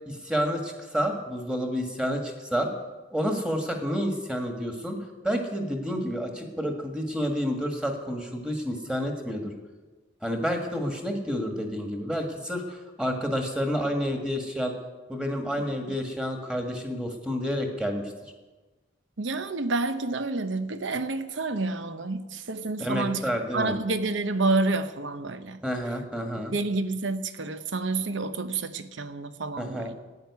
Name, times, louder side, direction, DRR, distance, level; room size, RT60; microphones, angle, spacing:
voice 1, 0.0-2.7 3.1-5.0 5.2-9.5 10.2-14.7 15.1-18.1 22.8-23.7 25.6-26.5 29.6-29.9, equal, 5° right, 1.6 m, -29 dB
voice 2, 19.2-25.6 26.5-29.9, right 3 dB, 80° right, 0.9 m, -29 dB
12.0 x 9.1 x 9.4 m
head